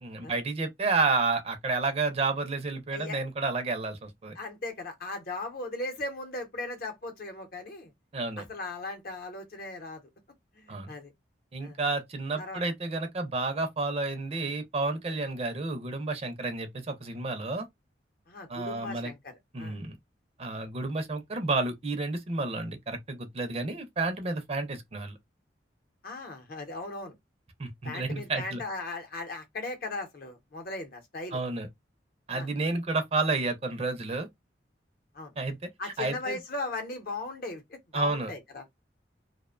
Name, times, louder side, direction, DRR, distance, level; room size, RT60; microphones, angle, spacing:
voice 1, 0.0-4.4 8.1-8.4 10.7-10.9 11.5-17.7 18.5-19.1 19.5-20.0 20.4-25.2 27.6-28.6 31.3-31.7 32.3-34.3 35.4-36.4 37.9-38.3, right 3 dB, 35° right, 0.5 m, -31 dB
voice 2, 4.3-7.9 8.4-10.0 10.5-11.1 11.6-11.8 12.4-12.6 18.3-19.8 26.0-27.1 27.8-31.4 32.3-32.5 35.1-35.3 35.8-38.6, left 2 dB, 55° left, 0.7 m, -38 dB
2.5 x 2.1 x 2.3 m
head